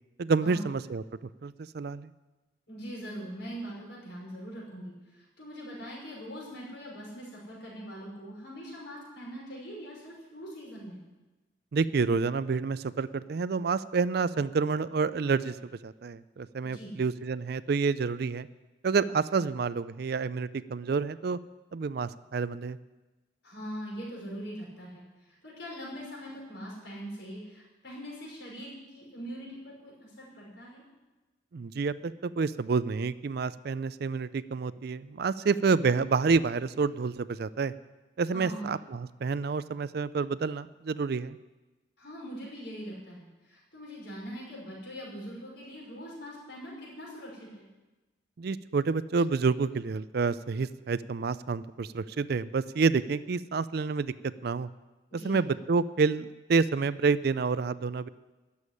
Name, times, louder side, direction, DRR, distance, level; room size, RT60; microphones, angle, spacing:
voice 1, 0.2-1.0 1.4-2.1 11.7-15.6 15.8-18.5 18.8-21.4 21.7-22.8 31.5-37.7 38.2-41.4 48.4-54.1 54.4-54.7 55.2-58.1, right 4 dB, 55° right, 16 dB, 0.4 m, -28 dB
voice 2, 2.7-11.0 16.6-17.0 23.4-30.8 38.3-38.7 42.0-47.7 55.1-55.4, equal, 65° left, -4 dB, 5.7 m, -42 dB
13.0 x 7.1 x 9.9 m, 1.1 s
head